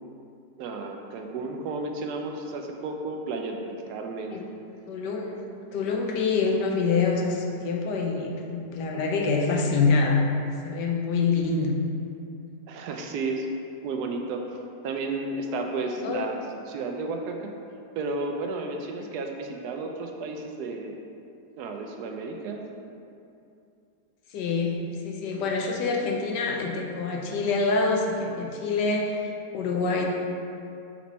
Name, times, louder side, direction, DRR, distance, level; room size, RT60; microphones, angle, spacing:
voice 1, 0.6-4.4 12.7-13.5 13.8-17.5 17.9-21.0 21.6-22.8, right 3 dB, 75° right, 3 dB, 1.1 m, -33 dB
voice 2, 4.9-10.3 10.6-11.7 16.0-16.3 19.0-19.1 24.3-30.1, left 4 dB, 90° left, 0 dB, 1.3 m, -26 dB
6.0 x 4.2 x 4.1 m, 2.6 s
omnidirectional pair, 1.8 m